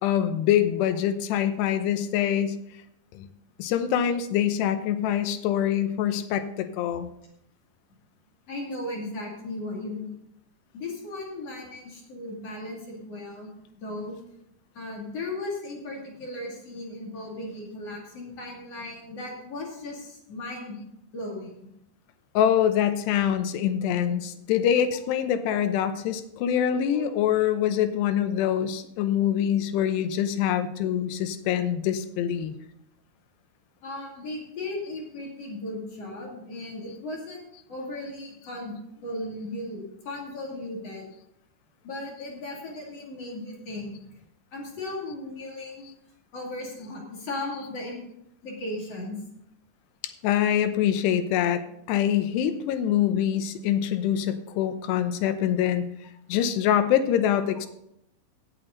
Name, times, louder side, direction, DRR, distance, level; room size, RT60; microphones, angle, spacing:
voice 1, 0.0-2.6 3.1-3.3 3.6-7.1 22.3-32.6 50.2-51.6 51.9-55.8 56.3-57.7, left 10 dB, 80° left, 10 dB, 2.9 m, -24 dB
voice 2, 8.5-10.2 10.7-13.5 13.8-14.2 14.7-20.8 21.1-21.5 26.8-27.1 33.8-38.7 39.0-41.1 41.8-43.9 44.5-45.8 46.3-48.0 48.4-49.2, left 2 dB, 40° left, -2 dB, 3.2 m, -36 dB
16.5 x 8.1 x 3.9 m, 0.78 s
omnidirectional pair, 4.8 m